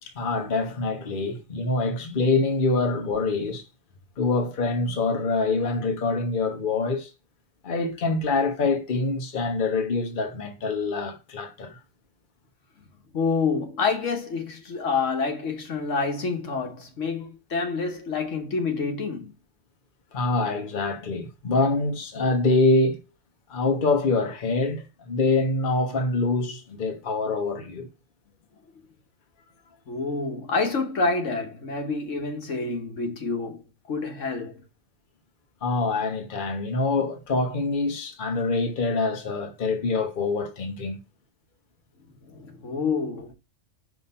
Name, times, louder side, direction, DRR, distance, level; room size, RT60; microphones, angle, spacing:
voice 1, 0.0-3.6 4.2-7.1 7.6-11.8 17.0-17.3 20.1-23.0 23.5-27.9 35.6-41.0, left 3 dB, 45° left, 1.1 m, -25 dB
voice 2, 13.1-19.3 29.9-34.6 42.2-43.3, left 4 dB, 80° left, 1.5 m, -28 dB
5.6 x 3.4 x 5.4 m
omnidirectional pair, 1.3 m